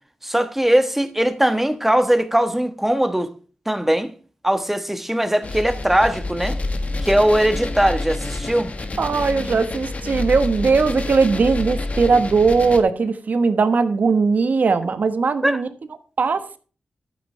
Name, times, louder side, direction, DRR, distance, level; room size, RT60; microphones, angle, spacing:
voice 1, 0.2-3.3 3.7-4.1 4.4-6.6 7.0-8.7 15.4-15.6, right 1 dB, 5° right, 1.3 m, -20 dB
sound 1, 5.4-12.8, left 2 dB, 50° left, 1.5 m, -28 dB
voice 2, 9.0-15.7 16.2-16.6, right 4 dB, 65° right, 1.3 m, -19 dB
12.5 x 9.3 x 3.3 m
wide cardioid pair, 80°, 3 cm